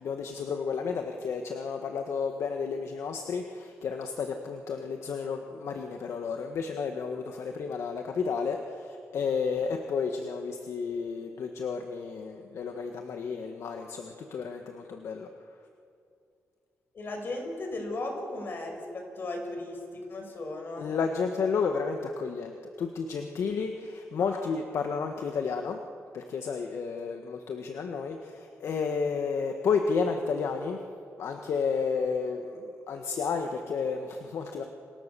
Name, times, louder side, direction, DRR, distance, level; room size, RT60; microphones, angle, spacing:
voice 1, 0.0-15.3 20.8-25.8 26.1-30.8 31.2-34.6, left 5 dB, 65° left, 4 dB, 1.7 m, -32 dB
voice 2, 16.9-20.9 24.2-24.6, left 2 dB, 45° left, 3 dB, 5.9 m, -36 dB
29.5 x 26.0 x 7.1 m, 2.5 s
cardioid pair, 135°, 5 cm